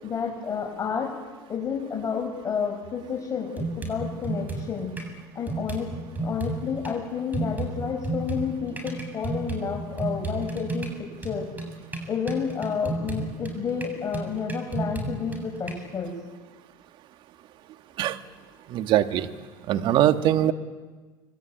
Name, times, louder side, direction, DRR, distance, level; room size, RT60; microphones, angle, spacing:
voice 1, 0.0-1.2 1.5-4.9 5.3-5.9 6.2-11.5 12.1-16.2, left 6 dB, 30° left, -1 dB, 5.8 m, -30 dB
sound 1, 2.8-3.0 3.6-5.1 5.5-6.9 7.3-15.7, right 2 dB, 15° right, 7.4 m, -32 dB
voice 2, 18.7-19.3 19.7-20.5, right 12 dB, 50° right, 8 dB, 2.0 m, -21 dB
25.5 x 21.5 x 9.5 m, 1.3 s
hypercardioid pair, 80°, 11 cm